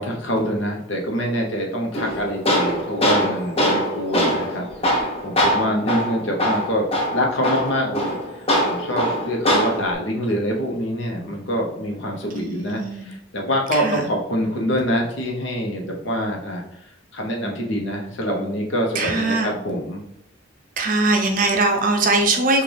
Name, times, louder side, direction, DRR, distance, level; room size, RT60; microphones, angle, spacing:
voice 1, 0.0-4.7 5.2-20.0, equal, 70° left, 1 dB, 1.0 m, -25 dB
Tools, 1.9-9.9, equal, 30° left, 0.9 m, -22 dB
voice 2, 12.3-13.1 13.7-14.1 18.9-19.5 20.8-22.6, right 2 dB, 45° right, 3 dB, 0.6 m, -21 dB
6.1 x 2.5 x 3.4 m, 0.77 s
head